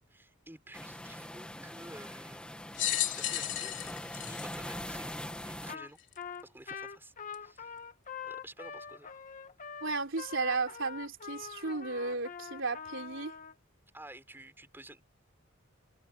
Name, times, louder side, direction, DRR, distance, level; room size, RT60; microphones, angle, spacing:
voice 1, 0.0-2.4 2.9-5.2 5.4-6.0 6.4-7.7 8.2-9.2 13.9-15.0, right 1 dB, 10° right, 6.0 m, -51 dB
sound 1, 0.7-5.8, left 1 dB, 5° left, 2.0 m, -42 dB
sound 2, 2.7-5.4 6.1-6.2 7.3-7.4, left 12 dB, 60° left, 4.0 m, -34 dB
Trumpet, 5.7-5.9 6.2-13.5, left 6 dB, 40° left, 1.6 m, -44 dB
voice 2, 9.8-13.3, right 3 dB, 65° right, 3.7 m, -34 dB
head